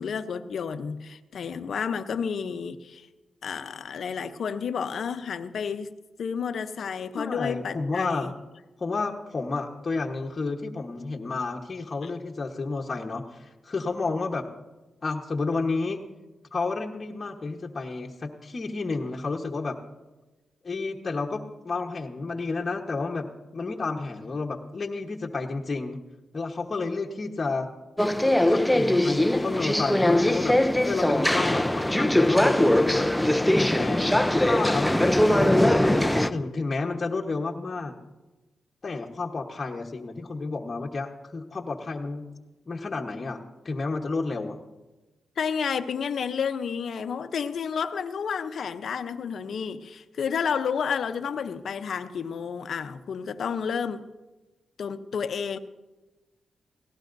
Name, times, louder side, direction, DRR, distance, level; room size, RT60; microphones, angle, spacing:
voice 1, 0.0-3.1 3.4-5.9 6.2-8.3 12.0-12.1 45.4-54.0 54.8-55.6, left 6 dB, 70° left, 0.7 m, -31 dB
voice 2, 7.2-8.3 8.8-14.5 15.0-16.0 16.5-19.8 20.6-23.3 23.5-26.0 26.3-27.7 28.5-30.6 30.8-33.1 33.8-37.9 38.8-42.3 42.7-44.6, left 3 dB, 45° left, 1.2 m, -31 dB
sound 1, 28.0-36.3, left 1 dB, 5° left, 0.6 m, -21 dB
18.5 x 17.0 x 2.7 m
cardioid pair, 55°, 0 cm